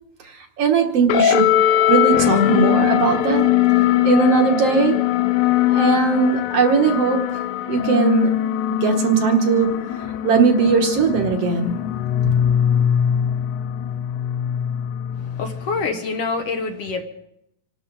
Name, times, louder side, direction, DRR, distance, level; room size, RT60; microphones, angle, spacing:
voice 1, 0.2-1.5 1.9-3.5 3.8-5.0 5.6-7.3 7.7-8.4 8.7-9.8 10.2-11.8, right 5 dB, 60° right, 4 dB, 2.0 m, -19 dB
sound 1, 1.1-15.9, left 11 dB, 85° left, 2.2 m, -21 dB
voice 2, 15.1-17.0, left 4 dB, 60° left, 4 dB, 2.0 m, -26 dB
26.5 x 12.0 x 3.9 m, 0.78 s
omnidirectional pair, 3.5 m